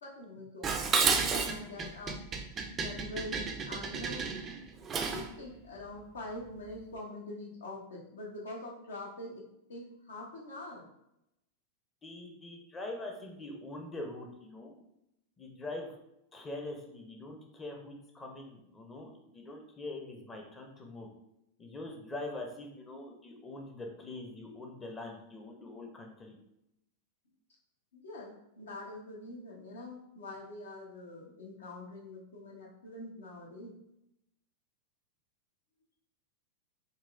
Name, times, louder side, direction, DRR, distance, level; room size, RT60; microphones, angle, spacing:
voice 1, 0.0-2.2 2.7-4.3 5.1-9.4 9.7-10.9 27.9-33.8, left 2 dB, 65° left, -2 dB, 0.8 m, -44 dB
Dishes pots and pans, 0.6-5.3, right 5 dB, 25° right, 0.4 m, -32 dB
voice 2, 12.0-14.7 15.4-15.9 16.3-21.1 21.6-26.3, left 2 dB, 20° left, 1 dB, 0.7 m, -43 dB
3.9 x 2.3 x 2.5 m, 0.83 s
figure-of-eight pair, 90°, 0 cm